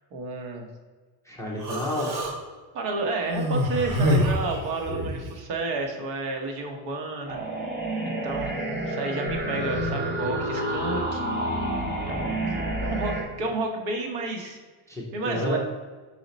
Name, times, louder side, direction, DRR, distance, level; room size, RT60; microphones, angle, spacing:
voice 1, 0.1-0.7 2.7-7.4 8.0-8.6 8.9-11.2 12.0-12.4 12.8-14.6 15.1-15.6, right 3 dB, 85° right, 2 dB, 1.3 m, -31 dB
voice 2, 1.2-2.2 11.8-12.7 14.9-15.6, left 1 dB, 5° left, -4 dB, 0.3 m, -32 dB
Human voice, 1.6-2.3 3.3-5.2, equal, 40° right, 1.0 m, -26 dB
sound 1, 7.3-13.2, right 1 dB, 20° right, 0.7 m, -29 dB
5.1 x 4.8 x 4.1 m, 1.4 s
cardioid pair, 170°, 49 cm